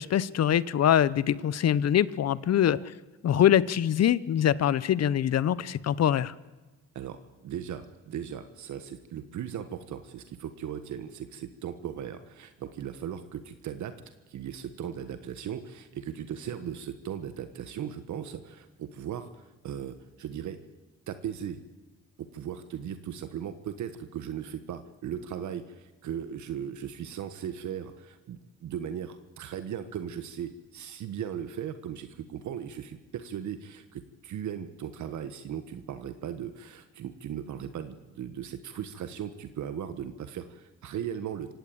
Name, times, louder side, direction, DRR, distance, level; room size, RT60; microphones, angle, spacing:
voice 1, 0.0-2.8 3.2-6.3, left 10 dB, 55° left, 19 dB, 0.9 m, -24 dB
voice 2, 7.4-13.9 14.3-20.6 21.1-21.6 22.2-41.5, right 9 dB, 70° right, 10 dB, 1.4 m, -37 dB
26.5 x 17.0 x 8.7 m, 1.2 s
cardioid pair, 90°, 30 cm